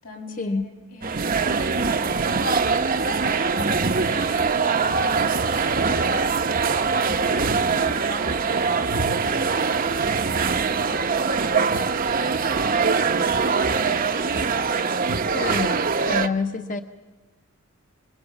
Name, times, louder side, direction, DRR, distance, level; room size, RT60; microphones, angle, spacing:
voice 1, 0.0-6.0 7.0-11.9 12.5-13.9, left 1 dB, 90° left, 0 dB, 6.6 m, -42 dB
sound 1, 1.0-16.3, right 4 dB, 40° right, 0.8 m, -23 dB
voice 2, 15.3-15.8 16.1-16.8, left 4 dB, 40° left, 7 dB, 0.8 m, -26 dB
29.0 x 21.5 x 7.0 m, 1.2 s
head